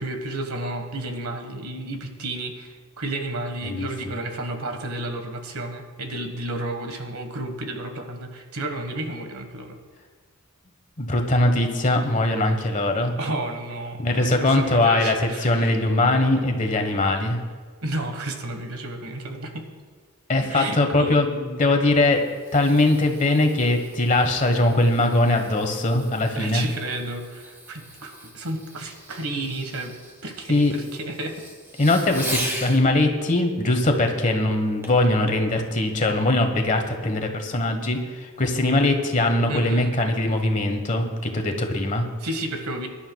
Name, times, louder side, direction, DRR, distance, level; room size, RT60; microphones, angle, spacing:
voice 1, 0.0-9.8 13.2-15.7 17.8-19.7 20.4-21.2 26.3-29.9 30.2-31.4 39.5-39.9 42.2-42.9, right 2 dB, 85° right, 5 dB, 1.4 m, -32 dB
voice 2, 11.0-13.1 14.0-17.4 20.3-22.2 22.5-26.6 30.5-30.7 31.8-42.1, left 2 dB, 35° left, 5 dB, 1.2 m, -21 dB
Fireworks, 21.9-32.8 34.8-35.1 35.7-35.8, right 1 dB, 10° right, 1.7 m, -39 dB
23.5 x 11.5 x 2.3 m, 1.5 s
head